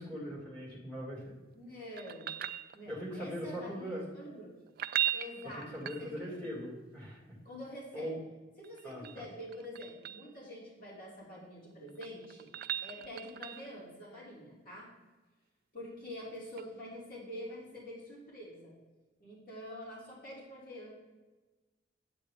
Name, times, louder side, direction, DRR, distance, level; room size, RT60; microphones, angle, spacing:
voice 1, 0.0-1.3 2.9-4.1 5.7-7.2 7.9-8.2 8.8-9.2, equal, 10° left, -4 dB, 2.3 m, -40 dB
voice 2, 1.5-2.5 2.7-4.6 5.1-6.1 7.4-8.2 8.6-12.5 12.8-14.9 15.7-18.8 19.2-20.9, left 1 dB, 50° left, -6 dB, 2.8 m, -46 dB
sound 1, 2.0-3.2 4.7-6.5 8.6-10.3 11.7-13.8 16.6-16.7, right 10 dB, 50° right, 0.3 m, -38 dB
8.7 x 8.5 x 3.4 m, 1.2 s
head